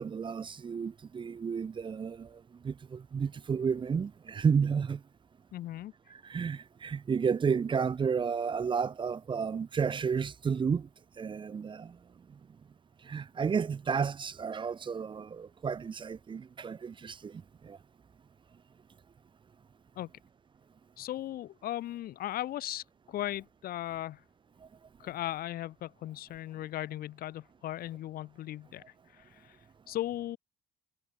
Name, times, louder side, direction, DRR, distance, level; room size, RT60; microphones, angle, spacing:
voice 1, 0.0-5.0 6.1-10.9 11.2-12.0 12.3-12.4 13.0-17.8 24.6-24.7, right 6 dB, 30° right, 0.7 m, -32 dB
voice 2, 5.5-5.9 20.0-20.1 21.0-24.2 25.0-28.8 29.1-29.6 29.9-30.4, left 13 dB, 60° left, 0.8 m, -37 dB
cardioid pair, 110°, 17 cm